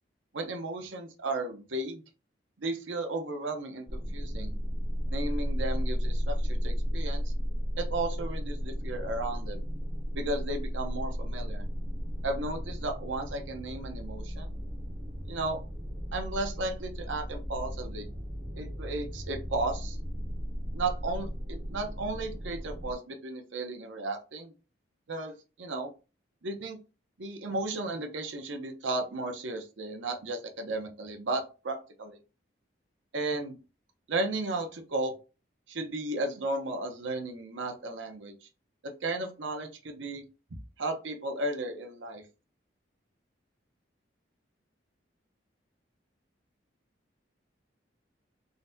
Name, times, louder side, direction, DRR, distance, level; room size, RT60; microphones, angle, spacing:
voice 1, 0.3-2.0 2.6-4.5 5.1-7.3 7.8-9.6 10.1-11.7 12.2-14.6 15.3-15.6 16.1-18.1 18.6-20.0 20.7-24.5 25.1-25.9 26.4-26.8 27.2-32.2 33.1-33.6 34.1-35.1 35.7-38.5 38.8-40.2 40.8-42.2, right 2 dB, 80° right, 5 dB, 0.7 m, -34 dB
sound 1, 3.9-22.9, equal, 20° right, 0.5 m, -34 dB
3.9 x 2.2 x 2.6 m, 0.31 s
head